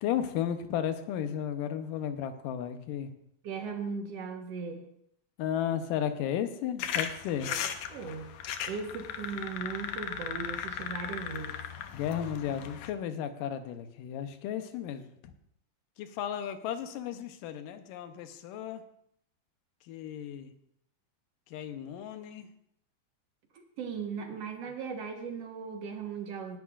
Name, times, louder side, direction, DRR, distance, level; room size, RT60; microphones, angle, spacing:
voice 1, 0.0-3.1 5.4-7.5 11.9-15.1 16.0-18.8 19.9-20.5 21.5-22.5, left 9 dB, 90° left, 9 dB, 2.5 m, -34 dB
voice 2, 3.4-4.8 7.4-7.6 7.9-8.3 8.7-11.6 23.5-26.6, right 5 dB, 60° right, 4 dB, 2.0 m, -38 dB
sound 1, 6.8-12.9, left 8 dB, 70° left, 1.8 m, -37 dB
18.5 x 11.0 x 2.5 m, 0.71 s
omnidirectional pair, 3.7 m